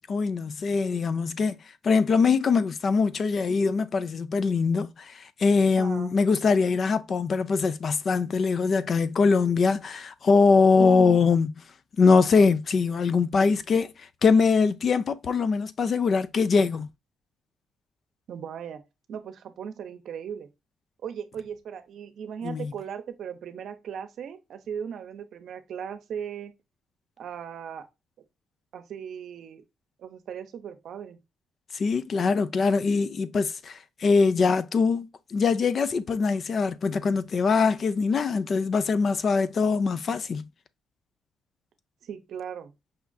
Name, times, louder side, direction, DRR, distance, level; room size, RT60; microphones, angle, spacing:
voice 1, 0.1-1.6 1.8-11.5 12.0-13.9 14.2-16.9 22.4-22.7 31.7-40.4, left 4 dB, 50° left, 0.4 m, -23 dB
voice 2, 5.8-6.1 10.8-11.2 18.3-18.8 19.1-20.5 21.0-26.5 27.2-27.8 28.7-29.6 30.0-31.2 42.0-42.7, right 8 dB, 70° right, 0.7 m, -37 dB
5.5 x 2.5 x 2.3 m
cardioid pair, 90°, 0 cm